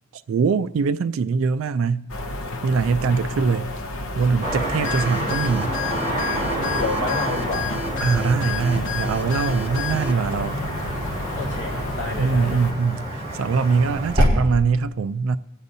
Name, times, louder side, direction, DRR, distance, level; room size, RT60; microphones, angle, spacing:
voice 1, 0.1-2.1 2.6-3.7 4.2-5.7 8.0-10.6 12.2-13.1 13.3-15.4, right 5 dB, 75° right, 0.3 m, -22 dB
sound 1, 2.1-12.7, left 1 dB, 85° left, 0.7 m, -31 dB
Car passing by / Traffic noise roadway noise, 4.4-14.3, equal, 20° right, 4.8 m, -28 dB
sound 2, 4.8-10.1, left 6 dB, 65° left, 1.1 m, -31 dB
voice 2, 6.7-7.7 11.4-12.7, left 3 dB, 15° left, 3.6 m, -30 dB
24.5 x 8.2 x 2.7 m
head